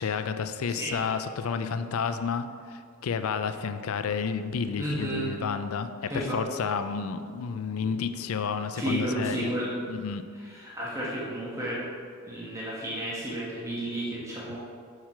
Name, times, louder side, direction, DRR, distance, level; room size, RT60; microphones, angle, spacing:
voice 1, 0.0-9.5 9.9-10.2, left 6 dB, 85° left, 10 dB, 0.4 m, -31 dB
voice 2, 4.8-5.3 6.1-6.4 7.8-8.0 8.7-9.7 10.3-11.8 12.2-14.6, right 1 dB, 15° right, -7 dB, 1.2 m, -32 dB
5.7 x 4.8 x 5.7 m, 2.2 s
head